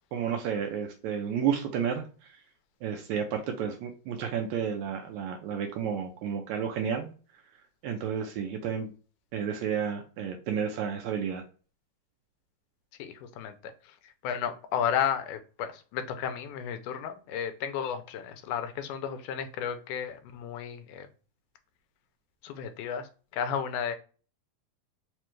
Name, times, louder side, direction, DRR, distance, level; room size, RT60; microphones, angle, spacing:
voice 1, 0.1-2.0 2.8-7.1 7.8-8.9 9.3-11.4, right 7 dB, 80° right, 4 dB, 1.7 m, -31 dB
voice 2, 13.0-13.9 14.2-21.1 22.4-24.0, left 8 dB, 85° left, 8 dB, 2.0 m, -33 dB
5.0 x 2.3 x 3.0 m, 0.36 s
omnidirectional pair, 3.6 m